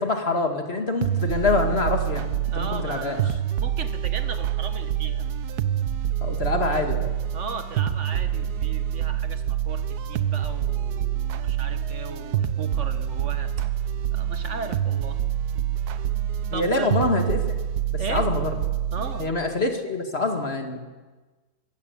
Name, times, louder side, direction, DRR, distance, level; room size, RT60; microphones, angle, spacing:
voice 1, 0.0-3.2 6.2-7.1 16.5-17.4 17.9-18.5 19.2-20.8, left 3 dB, 40° left, 5 dB, 2.3 m, -25 dB
sound 1, 1.0-19.3, right 10 dB, 85° right, 1.4 m, -27 dB
voice 2, 2.5-3.3 3.6-5.3 7.3-13.5 14.1-15.2 15.9-16.0 16.5-16.9 18.0-18.3 18.9-19.3, right 4 dB, 50° right, 9 dB, 1.8 m, -36 dB
23.0 x 15.0 x 8.3 m, 1.3 s
omnidirectional pair, 1.6 m